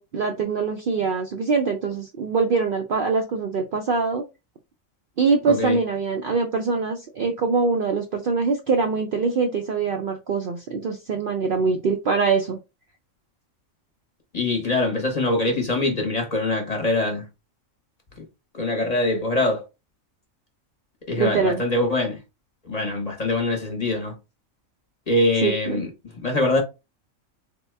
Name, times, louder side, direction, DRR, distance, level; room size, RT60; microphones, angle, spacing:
voice 1, 0.0-4.2 5.2-12.6 21.1-21.6 25.4-25.8, right 4 dB, 60° right, 0.5 m, -23 dB
voice 2, 5.5-5.8 14.3-17.3 18.5-19.6 21.1-22.2 22.6-24.1 25.1-25.9 26.1-26.6, left 2 dB, 35° left, 0.9 m, -23 dB
3.6 x 2.2 x 3.2 m
omnidirectional pair, 1.4 m